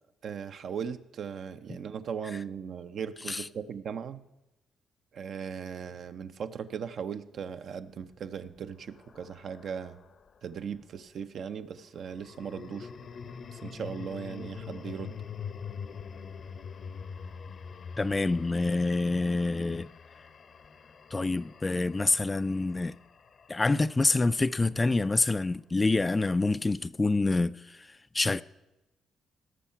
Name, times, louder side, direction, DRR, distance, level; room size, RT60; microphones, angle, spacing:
voice 1, 0.2-4.2 5.1-10.0 10.4-12.9 13.5-15.1, right 7 dB, 60° right, 0.6 m, -38 dB
sound 1, 7.9-10.4 12.0-24.3, left 6 dB, 50° left, 0.7 m, -44 dB
voice 2, 18.0-19.9 21.1-22.9 23.5-28.4, left 3 dB, 20° left, 0.3 m, -27 dB
17.5 x 6.4 x 5.7 m
cardioid pair, 90°, 0 cm